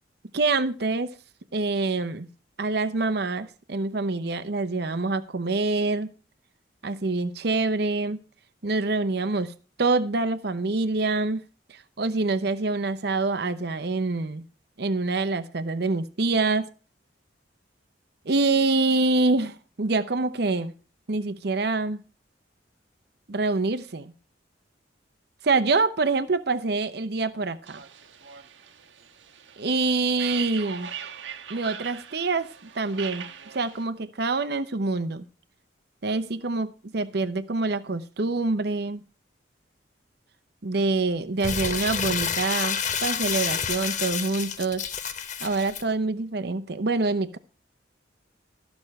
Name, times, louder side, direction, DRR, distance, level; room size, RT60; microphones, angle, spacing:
voice 1, 0.3-1.1 1.5-2.3 2.6-6.1 6.8-8.2 8.6-9.5 9.8-11.4 11.7-14.4 14.8-16.7 18.3-20.7 21.1-22.0 23.3-24.1 25.4-27.8 29.6-30.9 31.5-33.2 33.5-35.3 36.0-39.0 40.6-44.8 45.4-47.4, right 3 dB, 60° right, 10 dB, 0.8 m, -26 dB
sound 1, 27.6-33.8, right 8 dB, 90° right, 1.1 m, -41 dB
Crumpling crinkling, 41.4-45.8, left 7 dB, 40° left, 0.8 m, -29 dB
14.0 x 6.1 x 6.4 m, 0.35 s
head